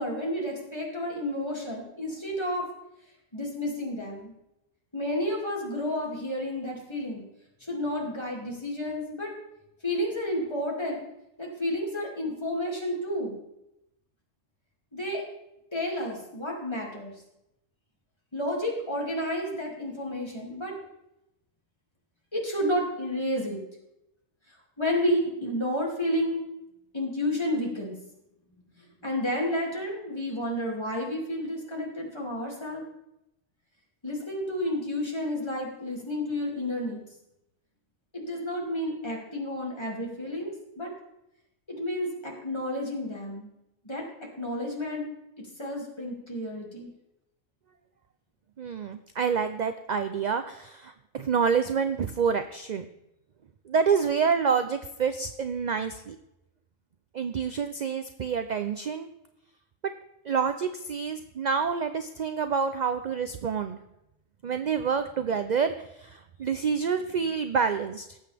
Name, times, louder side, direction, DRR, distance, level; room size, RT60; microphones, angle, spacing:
voice 1, 0.0-2.7 3.3-4.3 4.9-7.2 7.6-9.4 9.8-11.0 11.4-13.4 14.9-15.2 15.7-17.1 18.3-20.8 22.3-23.6 24.5-26.4 26.9-27.9 28.7-32.8 34.0-37.0 38.1-40.9 41.7-43.5 43.8-44.0 44.4-45.0 45.6-46.9, left 1 dB, 20° left, -2 dB, 2.7 m, -31 dB
voice 2, 48.6-52.9 53.7-56.2 57.1-59.1 60.2-63.8 64.4-68.2, right 6 dB, 55° right, 9 dB, 0.5 m, -28 dB
18.5 x 7.6 x 3.5 m, 0.85 s
omnidirectional pair, 1.4 m